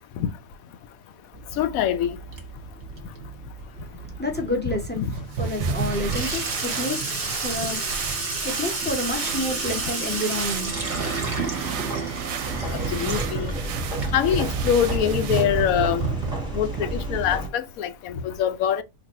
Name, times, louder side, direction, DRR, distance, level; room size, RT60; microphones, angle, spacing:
Water tap faucet / Sink (filling or washing), 1.3-17.4, right 4 dB, 40° right, 0.8 m, -30 dB
voice 1, 1.6-2.1 5.0-5.1 12.9-13.5 14.1-16.1 16.5-18.8, left 9 dB, 75° left, 1.0 m, -24 dB
voice 2, 3.8-5.0 5.4-11.7, left 1 dB, 10° left, 0.5 m, -30 dB
sound 1, 5.1-15.8, right 8 dB, 70° right, 0.9 m, -36 dB
sound 2, 12.4-17.5, right 2 dB, 5° right, 0.9 m, -31 dB
2.9 x 2.6 x 4.1 m
omnidirectional pair, 1.6 m